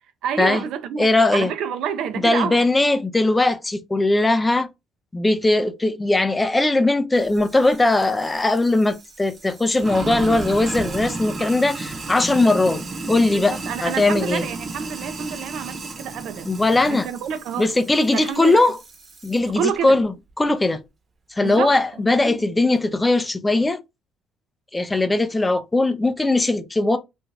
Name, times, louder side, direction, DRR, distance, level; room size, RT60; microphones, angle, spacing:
voice 1, 0.2-1.1 1.3-2.6 13.3-16.5 16.9-17.7 18.1-18.7 19.6-20.0 21.4-21.7 22.2-22.4, right 8 dB, 70° right, 0.5 m, -28 dB
voice 2, 1.0-1.5 2.2-4.7 5.1-14.4 16.4-17.1 17.6-18.8 19.2-20.8 21.3-23.8 24.7-27.0, left 2 dB, 15° left, 0.5 m, -19 dB
Sink (filling or washing), 7.2-19.5, right 3 dB, 40° right, 0.9 m, -34 dB
2.6 x 2.3 x 3.2 m
cardioid pair, 90°, 0 cm